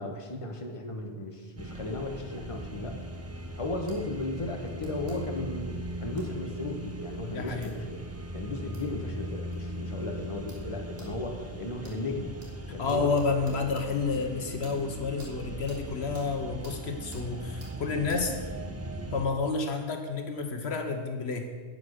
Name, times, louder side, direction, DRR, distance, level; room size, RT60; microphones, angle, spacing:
voice 1, 0.0-3.0 3.6-8.0 8.3-12.4 12.7-13.1, left 2 dB, 30° left, 2 dB, 1.4 m, -35 dB
sound 1, 1.6-19.3, right 1 dB, 15° right, 0.8 m, -39 dB
sound 2, 3.9-4.0 4.8-5.2 6.2-6.3 7.6-7.7 8.7-8.9 9.5-9.6 10.5-10.6 11.0-11.1 11.8-12.0 12.4-12.5 12.9-13.9 14.6-14.8 15.2-15.3 15.7-15.8 16.1-16.3 16.6-16.8 17.1-17.2 17.6-17.7 18.1-18.2, right 2 dB, 65° right, 2.5 m, -52 dB
voice 2, 7.3-7.7 12.8-18.4 19.1-21.5, left 4 dB, 75° left, 5 dB, 1.3 m, -30 dB
10.5 x 9.0 x 6.5 m, 1.5 s
omnidirectional pair, 1.1 m